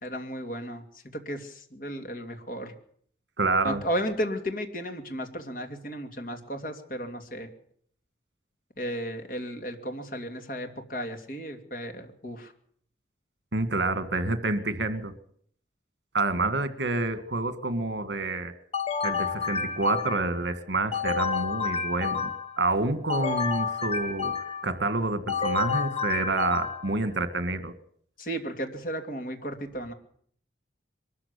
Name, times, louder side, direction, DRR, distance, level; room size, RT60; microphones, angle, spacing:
voice 1, 0.0-0.8 1.1-2.7 3.6-7.5 8.8-12.5 28.2-29.9, equal, 50° left, 6 dB, 2.7 m, -34 dB
voice 2, 3.4-3.8 13.5-15.1 16.1-18.5 19.0-24.3 24.6-27.7, right 2 dB, 75° right, 12 dB, 2.0 m, -28 dB
sound 1, 18.7-20.4 20.9-22.6 23.1-24.7 25.3-27.0, left 5 dB, 35° left, 1.6 m, -30 dB
23.0 x 13.5 x 8.5 m, 0.62 s
head